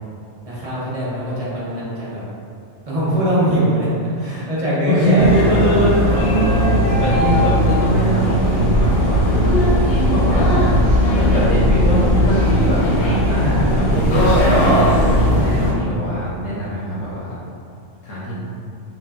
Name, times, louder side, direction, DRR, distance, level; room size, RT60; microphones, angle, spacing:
voice 1, 0.4-2.2 2.9-5.3 10.3-10.7, equal, 40° right, -8 dB, 0.6 m, -22 dB
voice 2, 4.8-9.2 10.1-10.5 11.1-17.3 18.0-18.3, equal, 85° left, -9 dB, 1.0 m, -22 dB
sound 1, 5.2-15.7, equal, 60° left, 0.8 m, -17 dB
2.9 x 2.9 x 2.3 m, 2.4 s
omnidirectional pair, 1.3 m